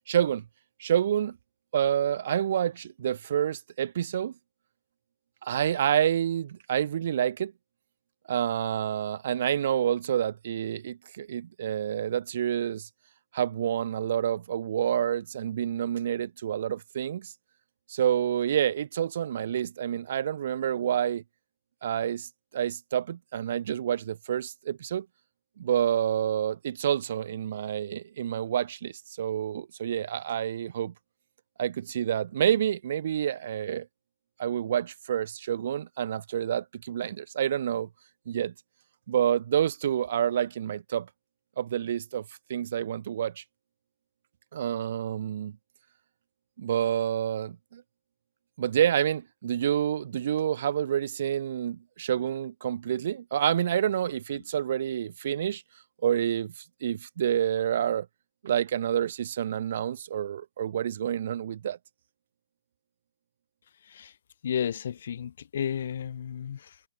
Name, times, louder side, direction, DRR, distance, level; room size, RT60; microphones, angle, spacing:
voice 1, 0.1-0.4 0.8-1.4 1.7-4.3 5.4-7.5 8.3-12.9 13.3-17.3 17.9-21.2 21.8-25.1 25.6-30.9 31.6-33.9 34.4-37.9 38.3-38.5 39.1-41.1 41.6-42.2 42.5-43.4 44.5-45.5 46.6-47.8 48.6-55.6 56.0-58.1 58.4-61.8, right 10 dB, 50° right, 2.3 m, -28 dB
voice 2, 63.8-64.2 64.4-66.8, left 8 dB, 55° left, 1.3 m, -33 dB
hypercardioid pair, 165°, 0 cm